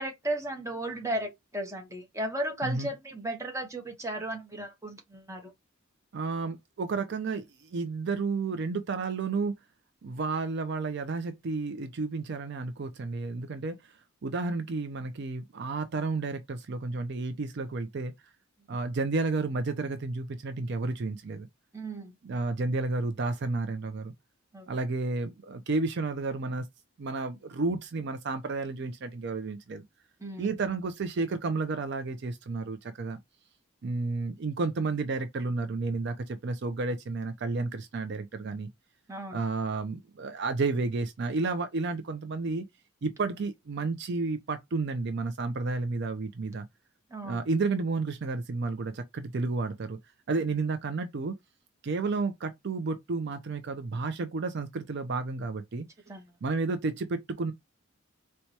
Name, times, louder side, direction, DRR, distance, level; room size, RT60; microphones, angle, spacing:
voice 1, 0.0-5.5 21.7-22.1 24.5-24.7 30.2-30.5 39.1-39.4 47.1-47.4 56.1-56.2, right 1 dB, 15° right, 0.9 m, -35 dB
voice 2, 6.1-9.5 10.0-14.0 14.2-18.1 18.7-21.5 22.2-24.1 24.7-26.7 27.0-29.8 30.4-33.2 33.8-38.7 39.3-42.6 43.0-46.7 47.2-50.0 50.3-51.3 51.8-55.9 56.4-57.5, right 3 dB, 55° right, 0.4 m, -31 dB
4.4 x 2.2 x 2.7 m
head